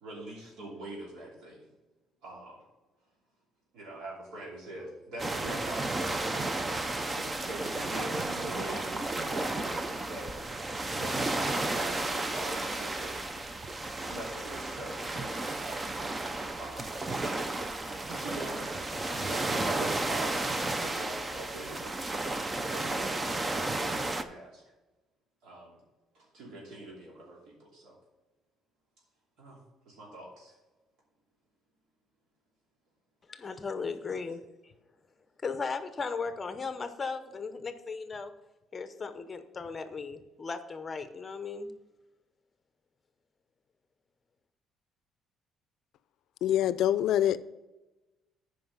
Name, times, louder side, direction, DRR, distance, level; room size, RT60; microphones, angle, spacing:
voice 1, 0.0-1.7 2.2-2.7 3.7-10.6 10.9-13.4 14.1-16.1 16.6-16.9 18.1-18.8 19.0-22.0 22.4-24.6 25.4-25.8 26.1-28.0 29.4-29.6 29.8-30.5 33.4-33.5, right 1 dB, 80° right, 2.8 m, -44 dB
sound 1, 5.2-24.2, right 2 dB, 20° right, 0.5 m, -33 dB
voice 2, 33.3-34.7 35.4-38.3 38.7-41.7, left 4 dB, 25° left, 0.7 m, -37 dB
voice 3, 46.4-47.4, left 11 dB, 70° left, 0.4 m, -25 dB
9.6 x 5.1 x 5.5 m
cardioid pair, 145°, 0 cm